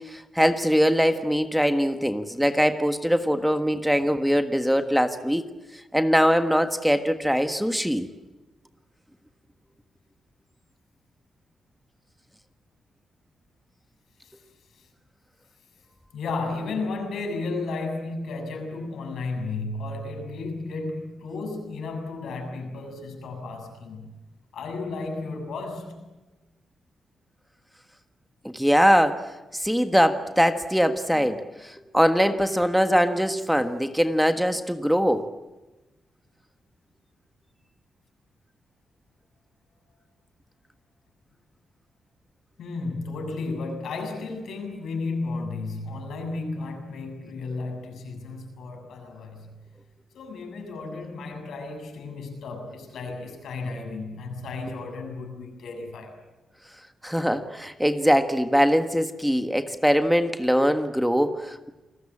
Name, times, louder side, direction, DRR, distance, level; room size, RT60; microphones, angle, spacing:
voice 1, 0.0-5.4 5.9-8.1 28.4-35.3 57.0-61.7, equal, ahead, 1.5 m, -22 dB
voice 2, 16.1-24.1 24.5-26.1 42.6-49.5 50.1-56.1, left 3 dB, 80° left, 7.3 m, -33 dB
29.0 x 20.0 x 8.8 m
cardioid pair, 115°, 0 cm